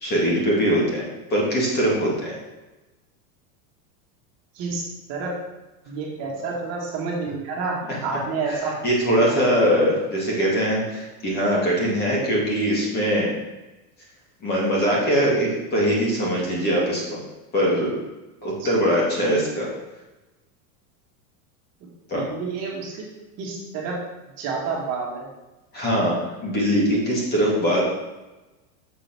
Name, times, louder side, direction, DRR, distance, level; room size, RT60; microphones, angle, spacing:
voice 1, 0.0-1.0 1.3-2.3 8.5-8.6 8.8-13.3 14.4-17.2 17.5-17.9 18.4-19.7 22.1-22.2 25.7-26.2 26.4-27.8, equal, 20° left, -4 dB, 2.1 m, -22 dB
voice 2, 4.5-5.4 5.9-7.8 8.0-8.7 9.2-9.3 18.6-18.7 22.1-23.0 23.4-24.0 24.4-25.3, right 4 dB, 35° right, -3 dB, 1.8 m, -29 dB
6.9 x 5.0 x 6.0 m, 1.1 s
supercardioid pair, 165°, 46 cm